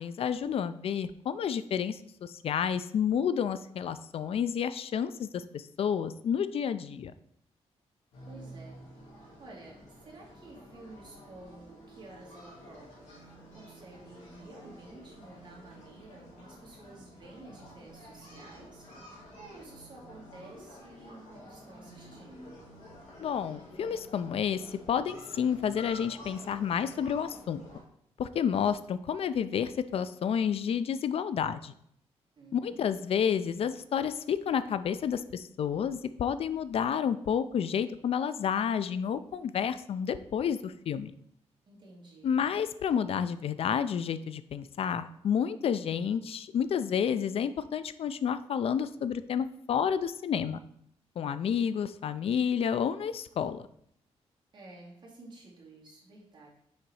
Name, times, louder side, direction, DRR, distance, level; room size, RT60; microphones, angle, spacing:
voice 1, 0.0-7.1 23.2-27.6 28.2-31.7 32.5-41.1 42.2-50.6 51.2-53.7, left 8 dB, 60° left, 13 dB, 0.4 m, -30 dB
sound 1, 8.1-27.8, equal, 85° left, 2.9 m, -50 dB
voice 2, 8.3-8.8 9.4-19.1 19.4-22.6 32.3-32.8 41.7-42.4 54.5-56.5, right 2 dB, 40° right, -5 dB, 2.3 m, -51 dB
6.4 x 3.9 x 4.7 m, 0.70 s
wide cardioid pair, 125°, 11 cm